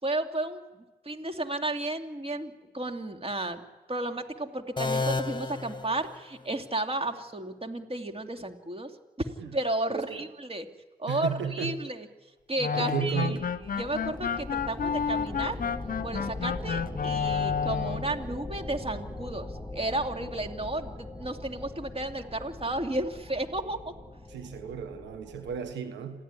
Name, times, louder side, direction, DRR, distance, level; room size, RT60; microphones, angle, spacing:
voice 1, 0.0-3.6 3.9-8.9 9.2-10.7 11.0-12.1 12.5-13.4 13.7-15.6 16.0-23.8, right 2 dB, 35° right, 5 dB, 2.7 m, -33 dB
sound 1, 4.8-6.7, left 3 dB, 25° left, 1.5 m, -32 dB
voice 2, 9.9-10.2 11.1-11.8 12.7-13.5 24.3-26.2, right 7 dB, 90° right, 8 dB, 1.4 m, -33 dB
sound 2, 12.6-18.1, left 7 dB, 50° left, 0.8 m, -31 dB
sound 3, 13.1-25.7, left 2 dB, 5° left, 2.9 m, -41 dB
27.5 x 16.0 x 9.9 m, 1.2 s
supercardioid pair, 45°, 18 cm